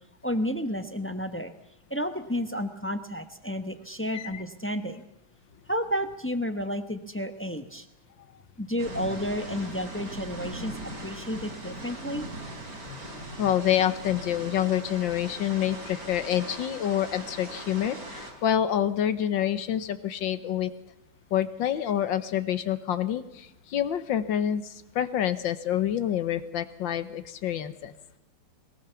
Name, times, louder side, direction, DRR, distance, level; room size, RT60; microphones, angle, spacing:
voice 1, 0.2-1.5 1.9-5.0 5.7-7.8 8.6-10.7 11.0-12.3, equal, 10° left, 9 dB, 0.6 m, -31 dB
sound 1, 8.8-18.3, right 1 dB, 45° right, 4.2 m, -40 dB
voice 2, 13.4-20.7 21.3-27.9, left 10 dB, 70° left, 12 dB, 1.7 m, -27 dB
22.0 x 19.5 x 7.0 m, 0.85 s
omnidirectional pair, 2.2 m